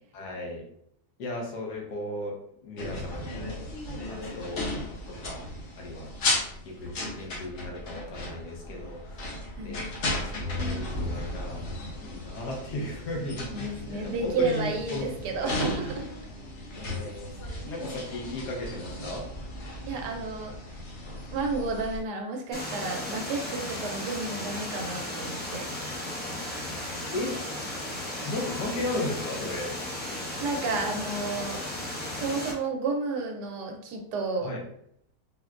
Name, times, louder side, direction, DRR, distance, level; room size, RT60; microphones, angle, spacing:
voice 1, 0.1-0.6 1.2-2.4 2.6-3.7 4.0-4.7 5.1-5.4 5.8-6.1 6.6-9.9 10.2-11.6 12.0-13.5 13.9-15.1 15.4-15.6 16.7-17.4 17.6-19.2 27.1-27.4 28.2-29.7 34.4-34.6, left 1 dB, 80° left, 0 dB, 1.4 m, -35 dB
sound 1, 2.8-22.0, left 1 dB, 55° left, 0.9 m, -35 dB
voice 2, 9.6-9.9 13.5-16.1 17.4-17.6 19.9-20.5 21.3-25.6 30.4-31.6 32.2-34.5, right 3 dB, 85° right, 3 dB, 1.2 m, -31 dB
sound 2, 13.7-19.1, right 2 dB, 65° right, 1.3 m, -50 dB
sound 3, 22.5-32.5, left 1 dB, 15° left, 0.3 m, -35 dB
4.1 x 2.2 x 2.4 m, 0.71 s
omnidirectional pair, 1.8 m